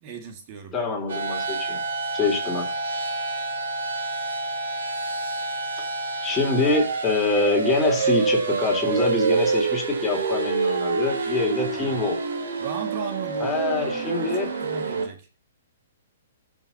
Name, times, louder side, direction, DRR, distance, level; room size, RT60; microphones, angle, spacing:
voice 1, 0.0-0.7 11.6-12.0 12.6-15.3, right 6 dB, 40° right, 5 dB, 2.0 m, -37 dB
voice 2, 0.7-1.8 2.1-2.7 6.2-12.2 13.4-14.5, left 3 dB, 15° left, 0 dB, 3.7 m, -25 dB
sound 1, 1.1-15.1, right 4 dB, 75° right, 3.6 m, -27 dB
18.0 x 7.3 x 2.8 m, 0.32 s
hypercardioid pair, 135°, 0 cm